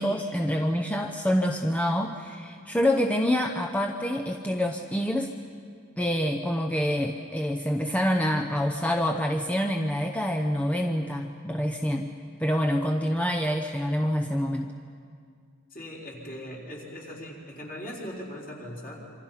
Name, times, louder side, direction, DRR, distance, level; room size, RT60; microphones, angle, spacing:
voice 1, 0.0-5.3 6.0-12.1 12.4-14.7, equal, 5° left, 3 dB, 0.8 m, -26 dB
voice 2, 15.7-19.1, equal, 40° left, -3 dB, 4.6 m, -39 dB
27.0 x 25.5 x 5.7 m, 2.2 s
head